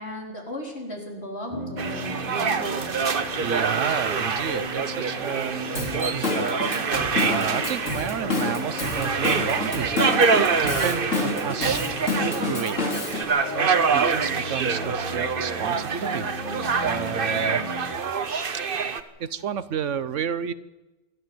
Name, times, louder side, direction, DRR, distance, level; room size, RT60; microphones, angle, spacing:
voice 1, 0.0-2.9 17.3-17.7, equal, 55° left, 0 dB, 4.6 m, -37 dB
sound 1, 1.5-17.9, left 2 dB, 35° left, 2.1 m, -37 dB
sound 2, 1.8-19.0, right 5 dB, 50° right, 1.2 m, -26 dB
voice 2, 3.4-10.0 10.3-12.8 13.5-16.3 16.8-17.6 19.2-20.5, right 8 dB, 75° right, 15 dB, 1.2 m, -31 dB
Drum kit / Drum, 5.7-13.2, left 3 dB, 75° left, 3.2 m, -29 dB
27.5 x 12.5 x 7.8 m, 1.1 s
omnidirectional pair, 1.3 m